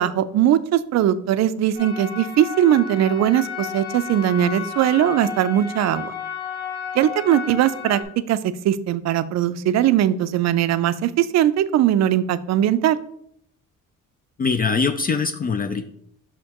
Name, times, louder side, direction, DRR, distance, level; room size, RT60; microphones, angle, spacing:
voice 1, 0.0-6.1 6.9-8.0 8.3-13.0, right 11 dB, 55° right, 14 dB, 0.4 m, -20 dB
sound 1, 1.7-8.0, left 7 dB, 80° left, 1.8 m, -32 dB
voice 2, 14.4-15.8, left 5 dB, 30° left, 8 dB, 0.4 m, -22 dB
6.3 x 5.7 x 2.9 m, 0.72 s
cardioid pair, 120°, 32 cm